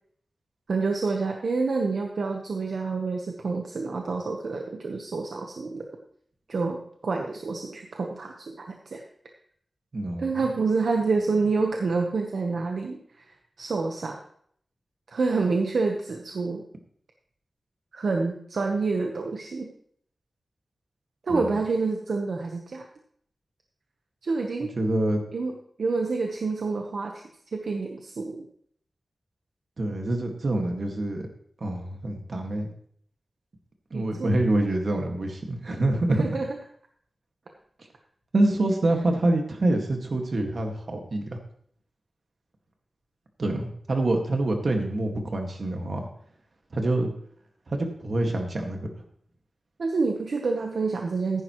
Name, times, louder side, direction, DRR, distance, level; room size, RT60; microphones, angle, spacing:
voice 1, 0.7-5.9 6.5-9.0 10.2-13.0 13.3-14.2 15.1-16.6 17.9-19.7 21.2-22.9 24.2-24.7 25.3-25.5 25.8-27.2 27.5-28.4 33.9-34.4 36.1-36.5 49.8-51.4, right 4 dB, 75° right, 2 dB, 1.1 m, -28 dB
voice 2, 9.9-10.4 21.3-21.6 24.8-25.2 29.8-31.3 31.6-32.7 33.9-36.2 38.3-41.3 43.4-46.1 46.7-47.1 47.7-48.9, right 1 dB, 55° right, 3 dB, 1.9 m, -26 dB
14.5 x 10.5 x 3.1 m, 0.63 s
wide cardioid pair, 120°, 0 cm